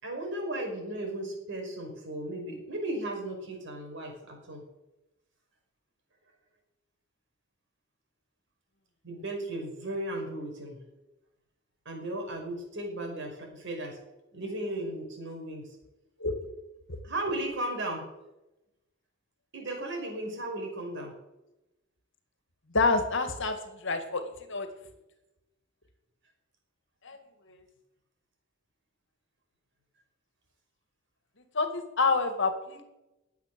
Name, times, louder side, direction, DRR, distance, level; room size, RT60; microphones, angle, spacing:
voice 1, 0.0-4.6 9.0-10.8 11.9-14.0 14.3-15.8 17.0-18.1 19.5-21.1, right 1 dB, 60° right, 2 dB, 5.4 m, -35 dB
voice 2, 22.7-23.6 23.8-24.2 24.5-24.7 27.1-27.2 31.6-32.8, left 3 dB, 65° left, 8 dB, 2.0 m, -27 dB
20.5 x 8.2 x 6.8 m, 0.97 s
head